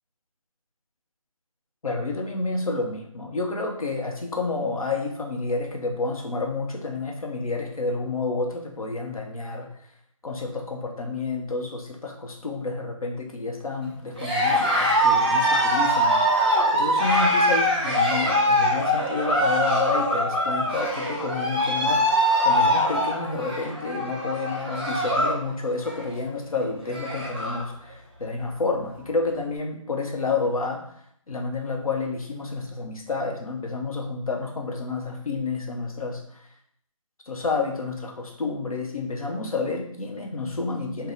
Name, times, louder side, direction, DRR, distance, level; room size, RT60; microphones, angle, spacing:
voice 1, 1.8-9.7 10.2-30.8 31.3-36.5 37.3-41.1, left 3 dB, 85° left, 1 dB, 0.9 m, -30 dB
Cheering, 14.1-25.4 25.7-26.1 26.5-26.6 26.8-27.7, equal, 15° right, 0.5 m, -23 dB
3.5 x 2.2 x 3.9 m, 0.68 s
figure-of-eight pair, 175°, 18 cm